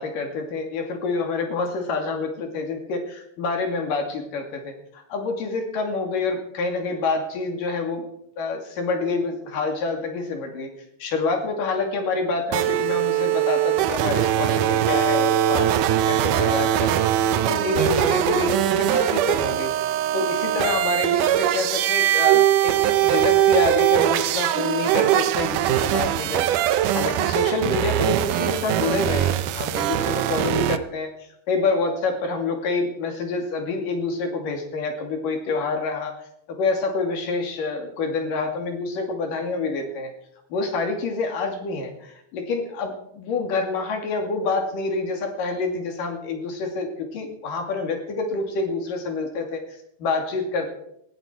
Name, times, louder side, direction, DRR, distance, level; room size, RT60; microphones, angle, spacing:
voice 1, 0.0-8.1 8.4-10.7 11.0-17.0 17.5-19.7 20.1-22.8 23.0-31.1 31.5-36.1 36.6-40.1 40.5-50.7, left 3 dB, 75° left, 4 dB, 4.2 m, -27 dB
sound 1, 12.5-30.8, right 12 dB, 75° right, 2.2 m, -21 dB
19.0 x 15.0 x 4.5 m, 0.74 s
omnidirectional pair, 3.9 m